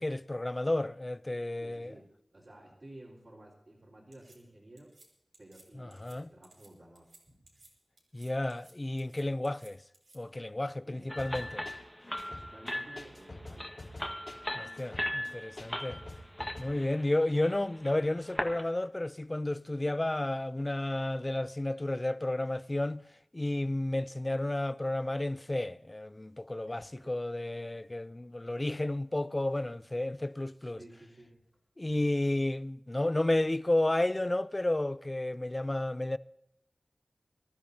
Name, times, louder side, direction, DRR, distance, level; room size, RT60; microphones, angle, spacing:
voice 1, 0.0-1.9 5.7-6.3 8.1-9.8 10.1-11.7 14.5-16.0 16.6-23.1 23.3-30.8 31.8-36.2, left 1 dB, 30° left, 0.5 m, -32 dB
voice 2, 1.6-4.9 5.4-7.6 10.9-11.3 12.0-13.8 26.7-27.1 30.8-31.4, right 1 dB, 55° right, 4.1 m, -54 dB
sound 1, 4.1-4.4 4.8-5.1 5.3-5.6 5.9-6.2 6.4-6.7 6.9-7.2 7.5-7.7 8.0-8.7 9.0-10.2, right 2 dB, 80° right, 3.9 m, -59 dB
sound 2, 11.1-18.6, left 1 dB, 10° left, 1.6 m, -39 dB
sound 3, 11.2-16.6, left 2 dB, 55° left, 3.5 m, -47 dB
24.5 x 12.5 x 2.8 m
wide cardioid pair, 55°, 0 cm